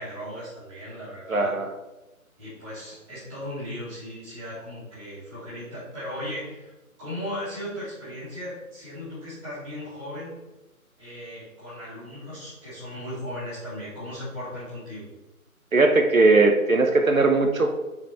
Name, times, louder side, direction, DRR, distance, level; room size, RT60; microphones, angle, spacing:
voice 1, 0.0-1.5 2.4-6.7 7.0-10.4 11.0-15.1, equal, 10° right, -13 dB, 2.3 m, -37 dB
voice 2, 1.3-1.7 15.7-17.7, right 3 dB, 70° right, 4 dB, 0.9 m, -19 dB
5.9 x 4.7 x 4.3 m, 1.0 s
figure-of-eight pair, 155°, 43 cm